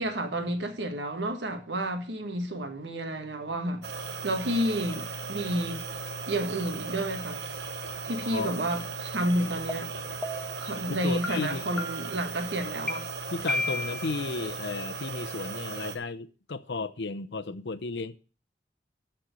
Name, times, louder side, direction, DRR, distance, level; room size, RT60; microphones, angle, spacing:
voice 1, 0.0-3.9 4.2-5.8 6.3-7.4 8.0-9.9 10.6-13.1, right 1 dB, 85° right, 1.6 m, -30 dB
sound 1, 3.8-16.0, right 3 dB, 65° right, 1.0 m, -37 dB
voice 2, 8.2-8.5 10.9-11.8 13.3-18.2, left 3 dB, 80° left, 0.7 m, -34 dB
sound 2, 9.7-9.8 10.2-10.6 11.2-11.3 11.8-12.2 12.9-13.0 13.5-14.1, left 2 dB, 5° left, 1.2 m, -32 dB
13.0 x 4.5 x 6.4 m
head